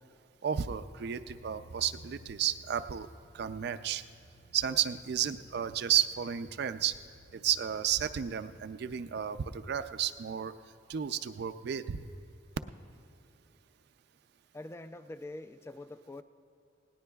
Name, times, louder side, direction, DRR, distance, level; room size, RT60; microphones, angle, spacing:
voice 1, 0.4-3.1 3.3-4.0 4.5-7.0 7.3-10.5 10.9-12.0, right 9 dB, 60° right, 10 dB, 0.4 m, -32 dB
sound 1, 1.2-9.5, right 1 dB, 70° left, 1.1 m, -56 dB
voice 2, 14.5-16.2, left 2 dB, 15° left, 11 dB, 0.3 m, -44 dB
19.5 x 17.5 x 2.3 m, 2.7 s
head